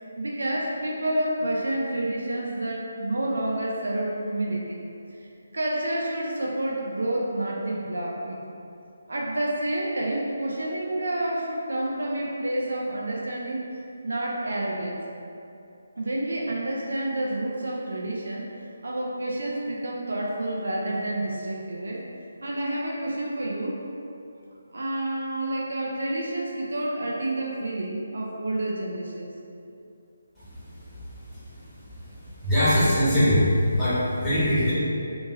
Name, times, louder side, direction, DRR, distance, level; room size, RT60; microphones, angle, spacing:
voice 1, 0.0-4.8 5.5-8.4 9.1-15.0 16.0-18.5 18.8-22.0 22.4-23.8 24.7-29.3, right 1 dB, 65° right, -2 dB, 0.4 m, -29 dB
voice 2, 32.4-34.7, equal, 10° left, -16 dB, 1.2 m, -21 dB
2.8 x 2.6 x 2.7 m, 2.6 s
figure-of-eight pair, 145°, 0 cm